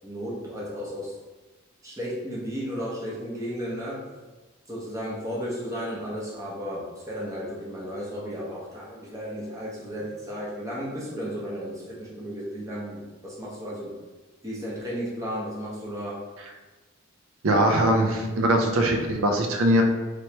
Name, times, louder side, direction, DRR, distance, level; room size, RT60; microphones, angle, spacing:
voice 1, 0.0-1.1 1.8-4.0 4.7-13.9 14.4-16.2, equal, 15° right, -5 dB, 0.7 m, -34 dB
voice 2, 17.4-19.8, right 1 dB, 70° right, 3 dB, 0.5 m, -21 dB
3.2 x 3.0 x 2.9 m, 1.2 s
head